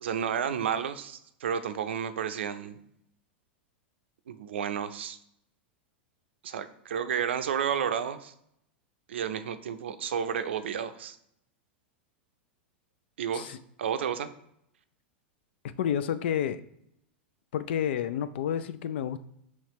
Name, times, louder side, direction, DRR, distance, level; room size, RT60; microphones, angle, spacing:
voice 1, 0.0-2.8 4.3-5.2 6.4-8.3 9.1-11.2 13.2-14.3, right 8 dB, 75° right, 10 dB, 0.4 m, -31 dB
voice 2, 15.8-16.6 17.5-19.2, left 9 dB, 70° left, 12 dB, 0.4 m, -30 dB
5.7 x 3.0 x 3.0 m, 0.75 s
hypercardioid pair, 100°, 6 cm